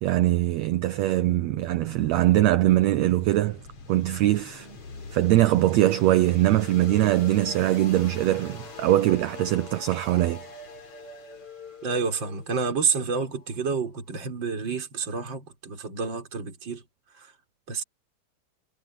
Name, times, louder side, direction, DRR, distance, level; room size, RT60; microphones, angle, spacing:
voice 1, 0.0-3.6 3.9-4.7 5.1-10.4, right 15 dB, 90° right, 1.5 m, -22 dB
sound 1, 1.2-14.0, left 3 dB, 45° left, 4.5 m, -44 dB
voice 2, 11.8-16.8 17.1-17.3 17.7-17.8, right 5 dB, 35° right, 5.5 m, -29 dB
omnidirectional pair, 3.8 m